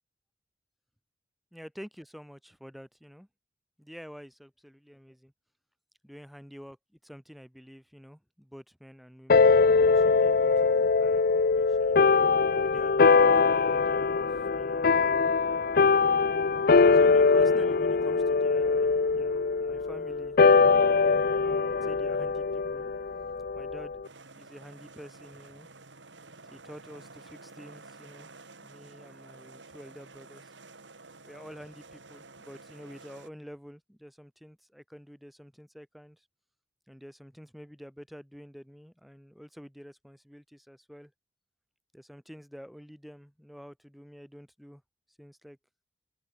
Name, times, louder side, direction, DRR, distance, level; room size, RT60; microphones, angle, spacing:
voice 1, 1.5-3.3 3.8-5.3 6.0-6.8 7.0-12.1 12.6-15.4 16.9-22.9 23.5-24.0 24.3-25.7 26.5-28.3 28.6-30.5 31.2-36.2 36.9-41.1 41.9-44.8 45.2-45.6, equal, ahead, 7.0 m, -49 dB
sound 1, 9.3-24.0, left 4 dB, 55° left, 0.6 m, -22 dB
sound 2, 24.0-33.3, right 3 dB, 85° right, 5.1 m, -51 dB
open air
head